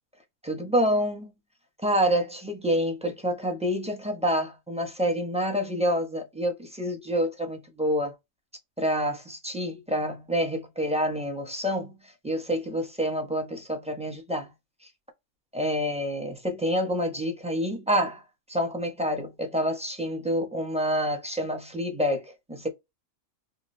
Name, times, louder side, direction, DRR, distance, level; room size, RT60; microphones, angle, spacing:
voice 1, 0.4-1.3 1.8-8.1 8.8-11.9 12.2-14.5 15.5-18.2 18.5-22.7, equal, 5° right, 0.8 m, -27 dB
4.0 x 2.7 x 2.7 m
omnidirectional pair, 1.5 m